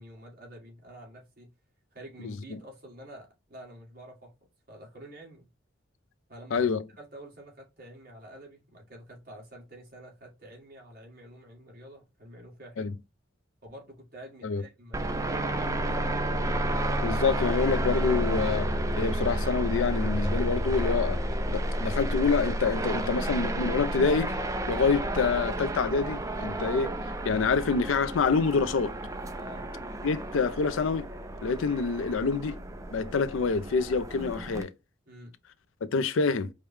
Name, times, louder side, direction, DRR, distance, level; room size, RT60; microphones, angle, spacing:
voice 1, 0.0-1.5 1.9-4.3 4.7-5.5 6.3-6.7 7.0-12.9 13.6-16.2 29.4-29.7 35.0-35.3, right 1 dB, 45° right, 1.8 m, -48 dB
voice 2, 2.2-2.6 6.5-6.8 12.8-12.9 14.4-14.6 16.9-18.7 19.0-21.2 21.5-24.3 24.7-26.9 27.2-28.9 30.0-31.1 31.4-32.6 32.9-34.7 35.8-36.5, left 4 dB, 75° left, 0.4 m, -27 dB
sound 1, 14.9-34.6, right 1 dB, 15° right, 0.3 m, -31 dB
4.8 x 2.2 x 3.2 m
head